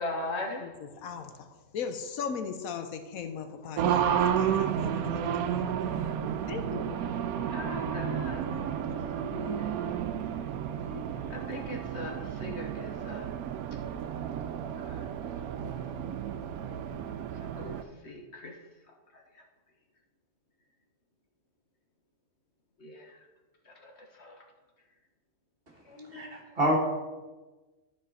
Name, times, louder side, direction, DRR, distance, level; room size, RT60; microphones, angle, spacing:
voice 1, 0.0-0.7 7.5-8.4 9.2-9.9 10.8-11.0 11.3-12.1 12.4-13.3 14.8-15.0 17.6-17.7 18.0-18.5 22.8-23.1 23.8-23.9 24.2-24.4 25.9-26.5, left 2 dB, 50° left, 1 dB, 1.5 m, -39 dB
voice 2, 0.6-5.9 6.5-6.9 8.9-9.1, left 6 dB, 75° left, 8 dB, 1.1 m, -38 dB
Race car auto racing, 3.8-17.8, right 9 dB, 85° right, 1.1 m, -32 dB
voice 3, 26.1-26.8, equal, 40° right, 0 dB, 1.6 m, -27 dB
12.0 x 5.1 x 4.1 m, 1.2 s
omnidirectional pair, 1.5 m